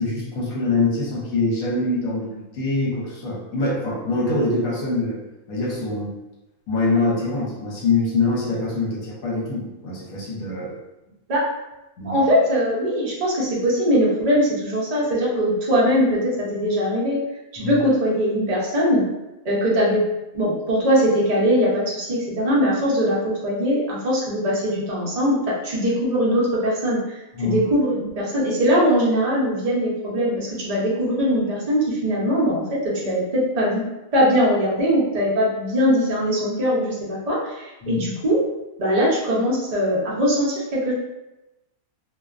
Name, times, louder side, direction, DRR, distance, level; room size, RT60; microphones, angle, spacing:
voice 1, 0.0-5.2 5.5-6.2 6.7-10.7 12.0-12.2 17.6-17.8 27.3-27.6 37.8-38.0, left 3 dB, 70° left, -4 dB, 1.1 m, -24 dB
voice 2, 12.0-17.2 17.5-19.0 19.4-20.0 20.3-38.4 38.8-40.9, equal, 45° right, -5 dB, 0.4 m, -21 dB
2.5 x 2.2 x 2.4 m, 0.99 s
omnidirectional pair, 1.5 m